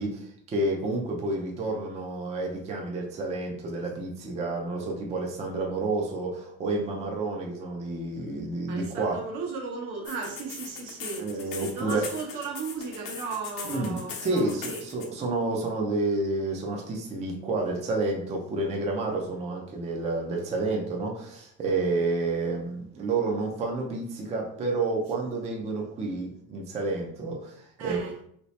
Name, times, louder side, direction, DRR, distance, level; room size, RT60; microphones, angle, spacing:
voice 1, 0.0-9.2 11.2-12.1 13.6-28.0, right 2 dB, 20° right, 0 dB, 0.4 m, -30 dB
voice 2, 8.7-14.8 27.8-28.2, right 4 dB, 75° right, 1 dB, 1.0 m, -36 dB
sound 1, 10.0-15.1, left 6 dB, 65° left, 0.8 m, -39 dB
2.8 x 2.8 x 3.1 m, 0.66 s
cardioid pair, 165°, 34 cm